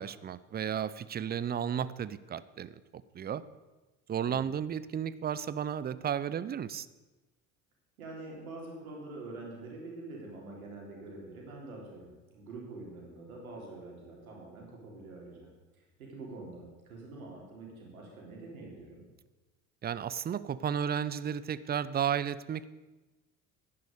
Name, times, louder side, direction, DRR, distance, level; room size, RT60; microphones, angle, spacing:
voice 1, 0.0-2.8 3.1-3.4 4.1-6.9 19.8-22.6, right 8 dB, 25° right, 17 dB, 0.6 m, -33 dB
voice 2, 8.0-15.5 15.7-19.0, right 2 dB, 80° right, -1 dB, 3.6 m, -46 dB
10.5 x 9.7 x 6.7 m, 1.1 s
figure-of-eight pair, 65°, 42 cm